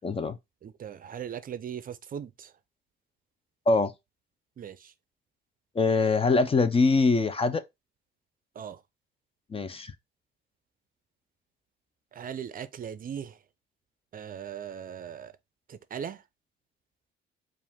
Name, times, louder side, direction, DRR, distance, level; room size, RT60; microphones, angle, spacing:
voice 1, 0.0-0.4 3.7-3.9 5.7-7.6 9.5-9.9, left 3 dB, 30° left, 0.6 m, -23 dB
voice 2, 0.6-2.5 4.6-4.8 8.6-8.8 12.1-13.3 14.1-15.3 15.7-16.2, right 8 dB, 45° right, 0.5 m, -38 dB
4.8 x 2.5 x 3.5 m
cardioid pair, 90°, 20 cm